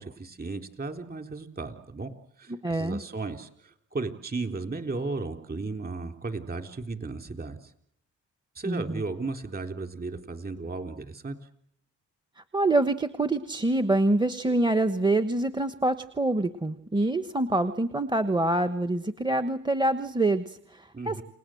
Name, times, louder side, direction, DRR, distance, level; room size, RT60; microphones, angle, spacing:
voice 1, 0.0-2.1 2.4-7.6 8.6-11.4 20.9-21.2, right 3 dB, 30° right, 6 dB, 3.8 m, -35 dB
voice 2, 2.5-3.0 8.6-9.0 12.4-21.2, right 2 dB, 15° right, 11 dB, 1.2 m, -26 dB
29.5 x 19.5 x 7.8 m, 0.75 s
cardioid pair, 90°, 30 cm